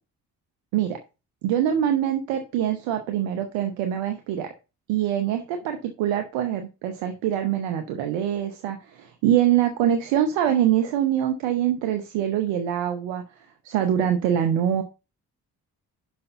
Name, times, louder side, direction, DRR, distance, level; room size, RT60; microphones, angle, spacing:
voice 1, 1.4-4.5 4.9-13.2 13.6-14.8, right 10 dB, 90° right, 6 dB, 0.9 m, -24 dB
6.0 x 5.6 x 6.5 m, 0.30 s
hypercardioid pair, 40°, 43 cm